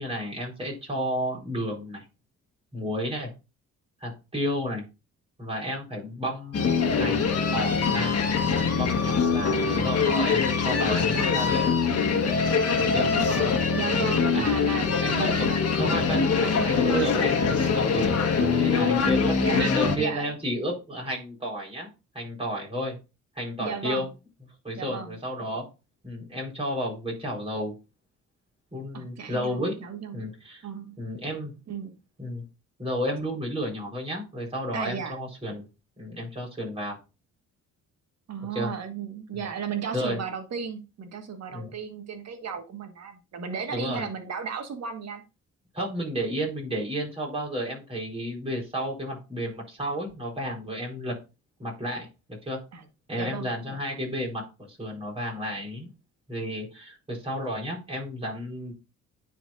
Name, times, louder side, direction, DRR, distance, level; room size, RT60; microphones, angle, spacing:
voice 1, 0.0-2.0 2.7-3.3 4.0-4.8 5.4-8.1 8.4-11.6 12.8-13.1 14.3-14.5 15.0-21.9 22.1-23.0 23.3-24.1 24.6-25.6 26.0-27.7 28.7-29.8 30.1-30.6 31.0-31.5 32.2-32.4 32.8-35.7 36.0-37.0 38.5-38.7 39.3-39.4 39.9-40.2 41.5-41.7 43.7-44.1 45.7-51.1 51.6-52.6 53.1-55.9 56.3-58.7, equal, 20° right, -2 dB, 4.1 m, -32 dB
sound 1, 6.5-20.0, left 5 dB, 55° left, 1.4 m, -23 dB
voice 2, 12.9-15.6 19.4-19.6 20.0-20.3 23.6-24.1 24.8-25.1 28.9-30.2 30.6-31.0 31.7-31.9 34.7-35.1 38.3-45.2 52.7-52.9 53.1-53.5, right 6 dB, 60° right, 6 dB, 1.6 m, -35 dB
9.9 x 4.6 x 2.5 m, 0.29 s
cardioid pair, 90°, 30 cm